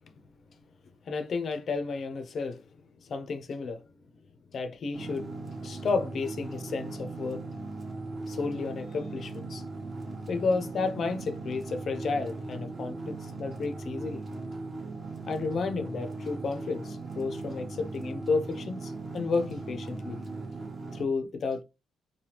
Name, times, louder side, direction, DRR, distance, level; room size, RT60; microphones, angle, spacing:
voice 1, 1.1-2.6 3.0-3.8 4.5-5.3 5.6-7.5 8.3-9.6 10.3-14.2 15.3-20.2 20.9-21.6, left 4 dB, 50° left, 0.6 m, -32 dB
sound 1, 4.9-21.1, right 3 dB, 30° right, 1.0 m, -38 dB
3.3 x 2.2 x 2.9 m
cardioid pair, 90°, 0 cm